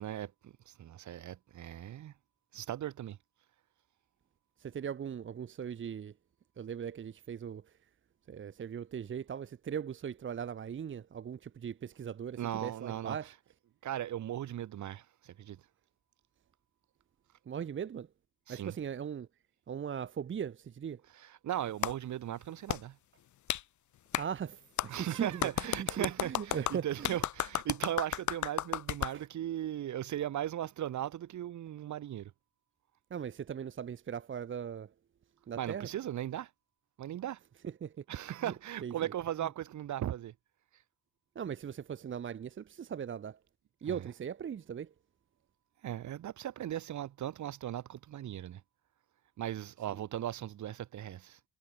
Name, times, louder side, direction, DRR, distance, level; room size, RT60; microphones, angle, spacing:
voice 1, 0.0-2.1 2.5-3.2 12.4-13.2 13.8-15.6 18.5-18.8 21.1-23.0 24.9-32.3 35.5-36.5 37.0-37.4 38.1-40.3 43.9-44.1 45.8-48.6 49.4-51.4, right 12 dB, 70° right, 3.1 m, -38 dB
voice 2, 4.6-6.1 6.6-7.6 8.3-13.3 17.5-18.1 18.5-19.3 19.7-21.0 24.1-25.5 25.8-27.2 29.1-29.2 33.1-34.9 35.5-35.9 37.8-37.9 38.4-38.5 38.8-39.1 41.3-43.4 43.8-44.9 49.9-50.0, right 8 dB, 40° right, 1.0 m, -39 dB
Clapping, 21.8-21.9 22.7-22.8 23.5-23.6 24.1-24.2 24.8-24.9 25.4-29.1, left 12 dB, 75° left, 3.1 m, -33 dB
cardioid pair, 90°, 30 cm